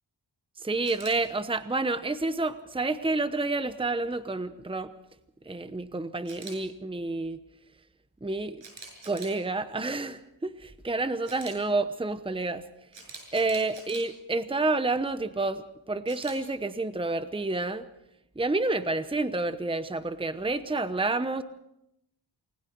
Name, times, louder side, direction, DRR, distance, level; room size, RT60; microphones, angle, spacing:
voice 1, 0.6-4.9 5.4-7.4 8.2-8.6 9.1-12.6 13.3-17.9 18.4-21.4, right 2 dB, 10° right, 11 dB, 0.9 m, -29 dB
Camera, 0.8-1.1 6.3-6.6 8.6-9.4 11.2-11.5 12.9-14.0 16.1-16.4, right 3 dB, 80° right, 6.6 m, -44 dB
29.0 x 20.5 x 4.6 m, 0.81 s
wide cardioid pair, 85°, 44 cm